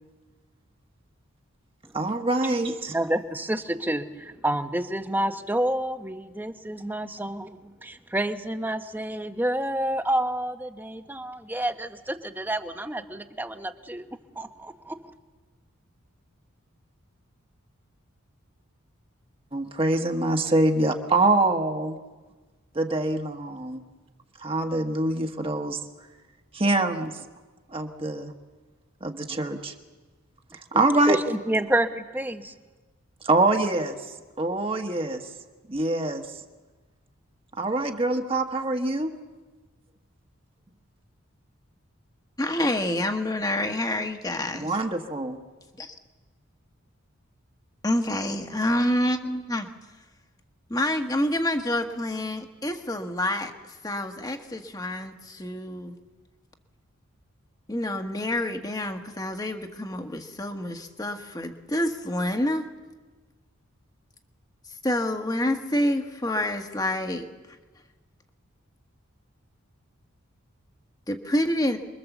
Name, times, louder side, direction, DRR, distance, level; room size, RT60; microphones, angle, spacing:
voice 1, 1.9-2.9 19.5-22.0 22.7-23.8 24.4-25.8 26.5-27.1 27.7-28.3 29.0-29.7 30.7-31.2 33.2-34.0 34.4-35.3 35.7-36.3 37.6-39.1 44.5-45.4, right 2 dB, 25° right, 4 dB, 1.2 m, -24 dB
voice 2, 2.9-14.1 14.4-15.0 30.7-30.8 31.1-32.5, right 1 dB, 10° right, 7 dB, 0.9 m, -29 dB
voice 3, 42.4-44.7 45.8-45.9 47.8-49.7 50.7-56.0 57.7-62.7 64.8-67.3 71.1-71.8, left 1 dB, 15° left, 5 dB, 1.3 m, -27 dB
28.0 x 22.0 x 7.1 m, 1.3 s
head